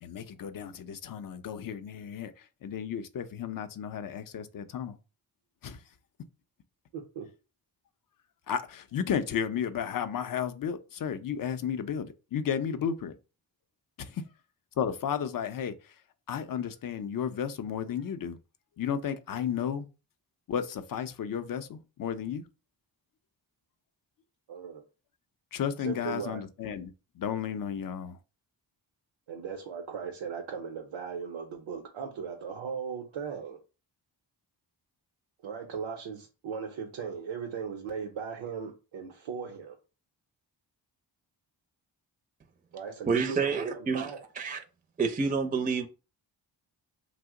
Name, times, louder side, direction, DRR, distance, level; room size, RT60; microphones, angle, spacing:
voice 1, 0.0-2.3 2.6-5.0 5.6-5.8 8.5-13.1 14.0-14.2 14.8-15.7 16.3-18.4 18.8-19.9 20.5-22.4 25.5-28.2, left 8 dB, 50° left, 0.5 m, -33 dB
voice 2, 6.9-7.3 24.5-24.8 25.8-26.4 29.3-33.6 35.4-39.8 42.7-44.2, right 6 dB, 85° right, 0.7 m, -38 dB
voice 3, 43.1-44.1 44.4-44.6 45.0-45.9, right 5 dB, 20° right, 0.4 m, -28 dB
2.8 x 2.0 x 3.6 m
cardioid pair, 60°, 46 cm